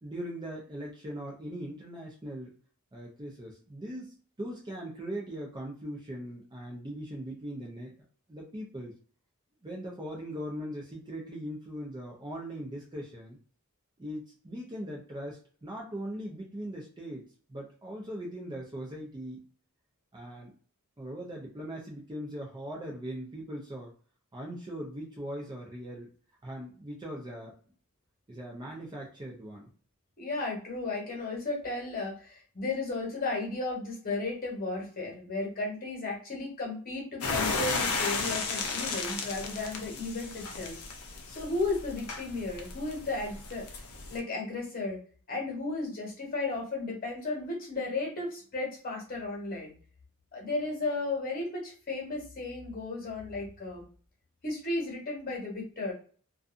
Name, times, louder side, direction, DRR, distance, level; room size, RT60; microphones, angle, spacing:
voice 1, 0.0-2.5 2.9-9.0 9.6-13.4 14.0-19.5 20.1-20.5 21.0-23.9 24.3-26.1 26.4-27.6 28.3-29.7, equal, 20° right, -2 dB, 0.5 m, -40 dB
voice 2, 30.2-40.8 41.3-43.7 44.1-45.0 45.3-49.7 50.3-53.9 54.4-55.9, left 3 dB, 40° left, -1 dB, 1.1 m, -34 dB
sound 1, 37.2-44.2, left 4 dB, 70° left, 0.6 m, -34 dB
2.6 x 2.3 x 2.4 m, 0.42 s
head